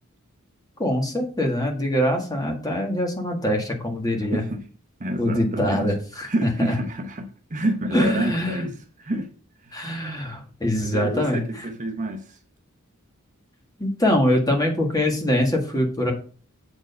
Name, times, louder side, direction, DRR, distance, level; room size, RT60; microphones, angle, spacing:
voice 1, 0.8-4.4 5.2-6.8 7.9-8.7 9.7-11.7 13.8-16.1, left 1 dB, 15° left, 1.7 m, -23 dB
voice 2, 4.3-4.7 5.0-5.9 6.2-8.7 9.0-9.3 9.6-10.1 10.8-12.4, right 1 dB, 35° right, 0.8 m, -28 dB
7.6 x 4.5 x 5.5 m
head